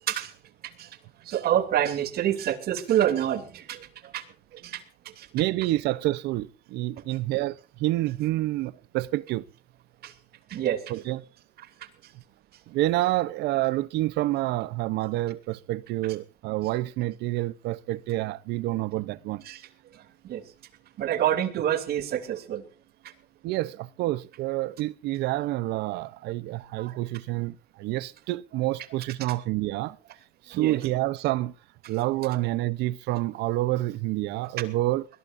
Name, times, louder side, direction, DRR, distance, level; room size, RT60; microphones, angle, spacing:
voice 1, 1.2-4.2 4.5-4.8 5.2-5.3 10.0-10.1 10.5-10.8 19.5-19.6 19.9-20.4 21.0-22.6 26.8-26.9 30.5-30.8, right 11 dB, 65° right, 2.8 m, -27 dB
voice 2, 5.3-9.4 10.9-11.2 12.7-19.4 23.4-30.0 30.4-31.5 31.9-35.1, right 17 dB, 85° right, 0.7 m, -28 dB
21.0 x 20.5 x 2.6 m
cardioid pair, 110°, 17 cm